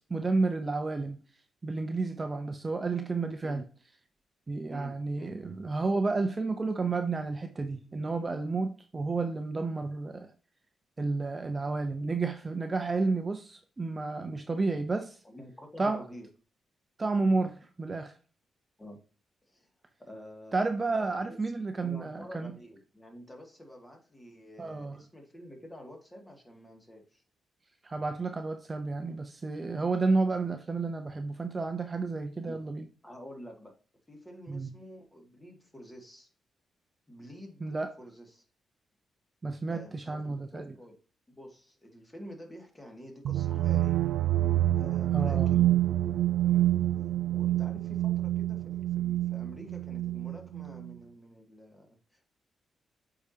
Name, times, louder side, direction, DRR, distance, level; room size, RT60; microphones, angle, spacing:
voice 1, 0.1-1.2 1.6-3.6 4.5-10.3 11.0-15.2 15.8-16.0 17.0-18.1 20.5-22.5 24.6-25.0 27.8-32.8 34.5-34.7 37.6-37.9 39.4-40.7 45.1-45.6, right 3 dB, 30° right, 0.7 m, -31 dB
voice 2, 4.7-5.4 15.2-16.3 18.8-19.0 19.4-19.7 20.0-20.6 20.9-21.2 21.8-27.2 32.4-32.6 33.0-33.7 34.1-36.3 37.1-38.4 39.6-41.0 41.3-44.0 44.8-45.8 46.4-46.9 47.3-52.3, equal, 15° left, 2.3 m, -49 dB
sound 1, 43.2-50.9, right 13 dB, 85° right, 0.3 m, -27 dB
8.2 x 4.9 x 2.8 m
cardioid pair, 90°, 0 cm